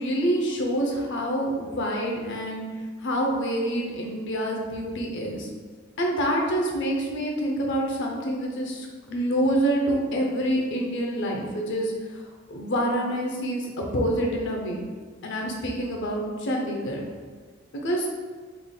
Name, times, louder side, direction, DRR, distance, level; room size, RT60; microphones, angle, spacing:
voice 1, 0.0-2.6 3.0-5.5 6.0-12.2 12.5-14.8 15.2-17.0 17.7-18.1, right 1 dB, 60° left, 0 dB, 0.6 m, -27 dB
3.6 x 3.4 x 2.2 m, 1.5 s
head